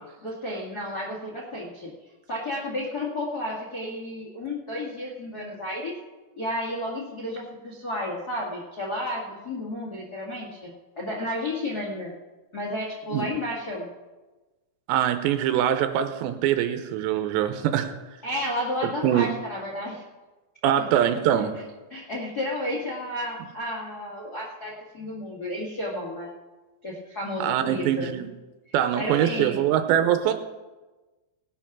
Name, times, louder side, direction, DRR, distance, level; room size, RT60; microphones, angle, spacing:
voice 1, 0.2-1.9 2.3-6.0 6.4-12.1 12.5-13.9 18.2-20.0 20.8-21.1 21.9-26.3 26.8-28.1 28.9-29.6, left 1 dB, 65° left, -3 dB, 0.9 m, -32 dB
voice 2, 14.9-17.9 19.0-19.3 20.6-21.5 27.4-28.3 28.7-30.3, right 10 dB, 80° right, 8 dB, 2.9 m, -23 dB
18.5 x 6.9 x 5.9 m, 1.2 s
omnidirectional pair, 5.2 m